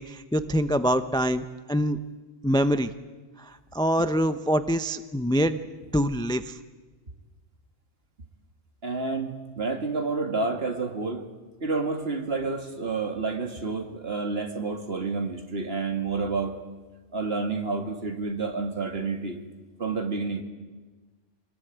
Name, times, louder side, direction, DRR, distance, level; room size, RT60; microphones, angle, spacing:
voice 1, 0.0-2.0 2.4-2.9 3.4-5.6 5.9-6.6, equal, 5° left, 10 dB, 0.6 m, -25 dB
voice 2, 8.8-11.3 11.6-16.6 17.1-19.4 19.8-20.4, right 4 dB, 50° right, 5 dB, 2.5 m, -29 dB
26.0 x 20.5 x 9.2 m, 1.3 s
omnidirectional pair, 1.3 m